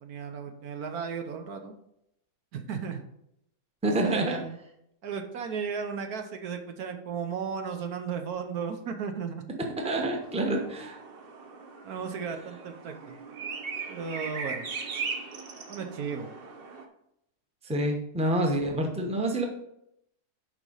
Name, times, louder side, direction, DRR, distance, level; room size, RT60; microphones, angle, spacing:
voice 1, 0.0-1.7 2.5-3.0 4.0-4.6 5.0-9.4 11.8-13.2 13.9-14.7 15.7-16.3, right 6 dB, 70° right, 5 dB, 1.3 m, -35 dB
voice 2, 3.8-4.4 9.8-11.0 17.6-19.4, right 1 dB, 5° right, 2 dB, 0.8 m, -27 dB
sound 1, 10.2-16.9, right 5 dB, 45° right, 0.9 m, -39 dB
7.1 x 5.1 x 5.5 m, 0.78 s
omnidirectional pair, 1.7 m